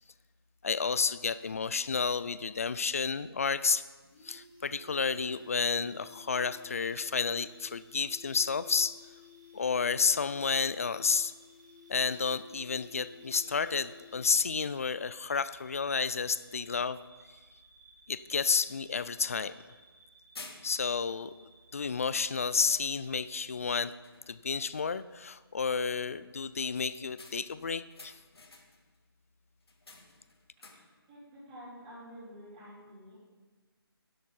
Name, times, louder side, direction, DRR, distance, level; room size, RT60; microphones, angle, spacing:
voice 1, 0.6-3.8 4.2-9.0 9.5-11.3 11.9-17.0 18.1-19.5 20.6-23.9 24.3-28.1, left 5 dB, 35° left, 16 dB, 0.3 m, -31 dB
sound 1, 4.0-14.7 15.0-15.1, left 5 dB, 10° left, 2.4 m, -55 dB
sound 2, 5.3-23.8, right 3 dB, 60° right, 3.6 m, -61 dB
sound 3, 19.8-20.0 20.3-21.1 21.8-22.0 22.4-23.2 23.6-23.8 24.0-24.5 27.2-29.0 29.6-31.1, left 3 dB, 75° left, 1.7 m, -52 dB
voice 2, 31.1-33.1, equal, 15° right, -11 dB, 4.2 m, -49 dB
11.0 x 7.8 x 5.5 m, 1.3 s
figure-of-eight pair, 165°, 13 cm